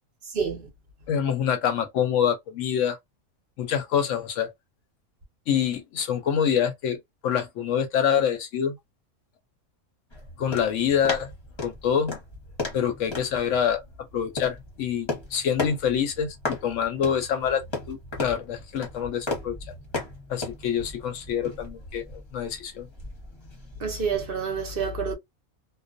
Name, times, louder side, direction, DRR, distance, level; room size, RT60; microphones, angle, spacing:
voice 1, 1.1-3.0 3.6-4.5 5.5-7.0 7.2-8.7 10.4-11.3 11.6-12.1 12.7-13.8 14.1-19.6 20.3-22.9, left 8 dB, 70° left, 0.8 m, -26 dB
sound 1, 10.1-24.3, left 2 dB, 25° left, 0.7 m, -36 dB
voice 2, 23.8-25.2, right 5 dB, 55° right, 0.7 m, -28 dB
2.4 x 2.1 x 2.5 m
omnidirectional pair, 1.5 m